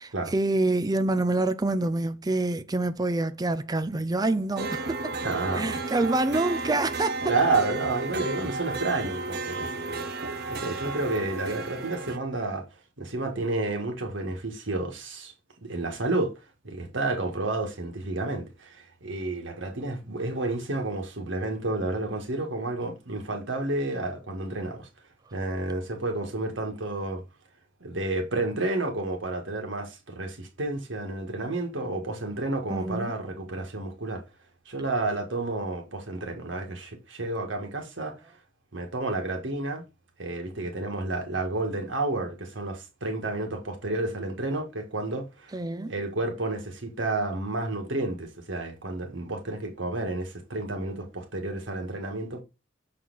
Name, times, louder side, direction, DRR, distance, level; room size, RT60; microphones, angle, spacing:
voice 1, 0.0-5.1 5.5-7.2 32.7-33.1 45.5-45.9, right 2 dB, 20° right, 0.5 m, -26 dB
sound 1, 4.6-12.2, right 3 dB, 55° right, 0.9 m, -33 dB
voice 2, 5.2-5.8 7.2-10.1 10.5-12.7 13.0-15.3 15.6-16.3 16.6-24.9 25.3-27.2 27.8-34.2 34.7-38.2 38.7-39.8 40.2-45.5 45.9-52.4, right 2 dB, 80° right, 1.7 m, -30 dB
6.4 x 4.3 x 4.0 m
head